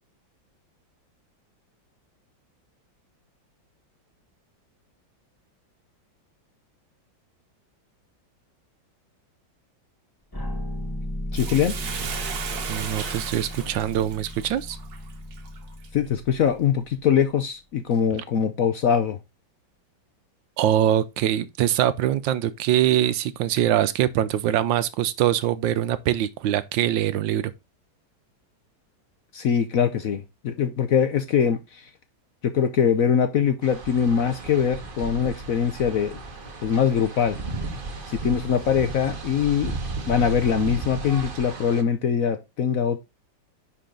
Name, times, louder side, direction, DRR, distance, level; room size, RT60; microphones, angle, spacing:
sound 1, 10.3-17.2, left 1 dB, 15° left, 1.3 m, -35 dB
voice 1, 11.3-11.7 15.9-19.2 29.3-31.8 32.4-36.2 36.6-37.4 38.1-39.7 40.1-43.0, left 7 dB, 60° left, 1.0 m, -22 dB
Bathtub (filling or washing), 11.3-15.9 16.4-16.5, right 7 dB, 55° right, 1.5 m, -35 dB
voice 2, 12.7-14.8 20.6-27.5, right 11 dB, 80° right, 1.3 m, -23 dB
sound 2, 33.6-41.8, right 3 dB, 30° right, 1.1 m, -34 dB
10.0 x 4.3 x 3.8 m
omnidirectional pair, 2.1 m